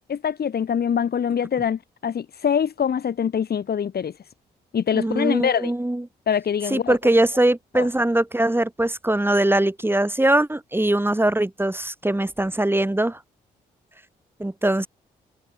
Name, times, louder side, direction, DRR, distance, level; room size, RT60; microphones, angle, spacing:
voice 1, 0.1-4.1 4.7-5.7 6.3-7.0 7.8-7.9, left 8 dB, 60° left, 5.5 m, -24 dB
voice 2, 4.9-6.0 6.7-13.2 14.4-14.9, right 1 dB, 10° right, 4.0 m, -21 dB
hypercardioid pair, 45°, 18 cm